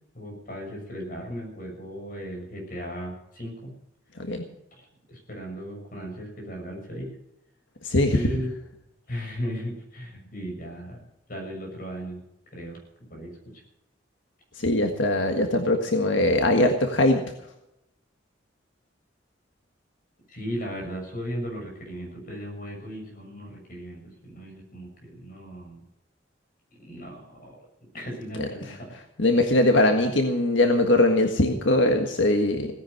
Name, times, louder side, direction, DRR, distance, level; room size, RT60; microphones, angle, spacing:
voice 1, 0.1-3.7 4.7-7.1 8.1-8.5 9.1-11.0 11.3-12.2 12.5-13.6 20.3-25.8 26.8-27.7 27.9-28.9 29.4-29.5, equal, 50° left, 1 dB, 6.7 m, -36 dB
voice 2, 7.8-8.2 14.6-17.2 28.4-28.5 29.2-32.7, left 1 dB, 80° left, 4 dB, 1.6 m, -21 dB
17.5 x 10.0 x 6.6 m, 0.84 s
head